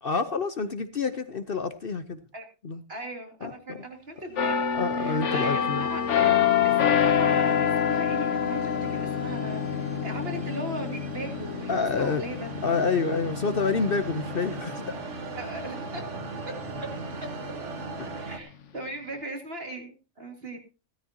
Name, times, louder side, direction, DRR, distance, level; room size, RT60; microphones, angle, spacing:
voice 1, 0.0-2.2 2.6-2.8 3.4-3.8 4.7-5.9 11.7-12.2 12.6-15.0 18.0-18.2, left 4 dB, 50° left, 10 dB, 1.0 m, -28 dB
voice 2, 2.9-4.7 5.0-6.3 6.6-12.5 15.3-16.0 18.1-20.6, right 1 dB, 50° right, 2 dB, 3.0 m, -38 dB
sound 1, 4.3-18.4, right 3 dB, 65° right, 1.7 m, -40 dB
sound 2, 4.4-15.9 16.3-16.6, left 8 dB, 65° left, 1.3 m, -27 dB
16.5 x 13.5 x 2.8 m, 0.32 s
omnidirectional pair, 1.4 m